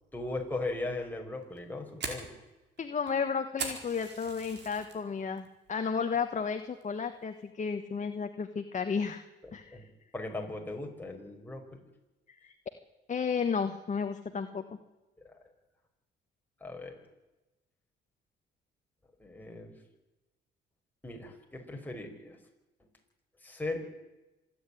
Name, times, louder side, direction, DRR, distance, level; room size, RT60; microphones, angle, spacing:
voice 1, 0.1-2.3 9.4-9.9 10.1-11.8 15.2-15.3 16.6-17.0 19.2-19.8 21.0-22.4 23.4-23.8, left 2 dB, 10° left, 1 dB, 5.2 m, -38 dB
Fire, 1.4-5.0 5.4-5.8 6.1-6.3 6.8-7.1, right 4 dB, 60° right, 4.7 m, -40 dB
voice 2, 2.8-9.2 9.5-9.8 12.3-12.5 13.1-14.6, left 6 dB, 40° left, 7 dB, 1.4 m, -33 dB
26.0 x 9.9 x 10.0 m, 1.0 s
cardioid pair, 90°, 20 cm